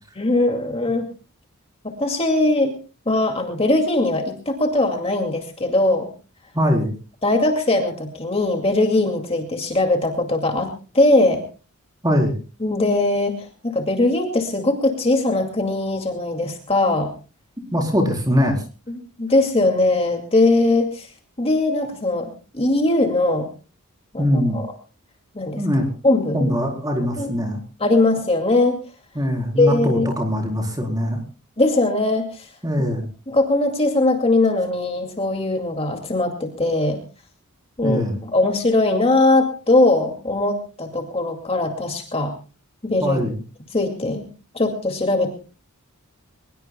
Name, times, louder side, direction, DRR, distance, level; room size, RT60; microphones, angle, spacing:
voice 1, 0.2-1.1 2.0-2.7 3.1-6.1 7.2-10.7 10.9-11.4 12.6-17.1 18.9-21.1 21.4-23.5 24.1-24.7 25.3-25.6 26.0-26.4 27.2-27.3 27.8-28.8 29.5-30.1 31.6-32.5 33.3-37.0 37.8-42.3 42.8-43.2 43.7-44.3 44.5-45.4, left 2 dB, 25° left, 4 dB, 2.3 m, -20 dB
voice 2, 6.5-6.9 12.0-12.4 17.7-18.6 24.2-24.6 25.6-25.9 26.3-27.6 29.2-31.2 32.6-33.1 37.8-38.2 43.0-43.4, equal, 15° right, 2 dB, 4.1 m, -21 dB
23.0 x 21.0 x 2.3 m, 0.36 s
head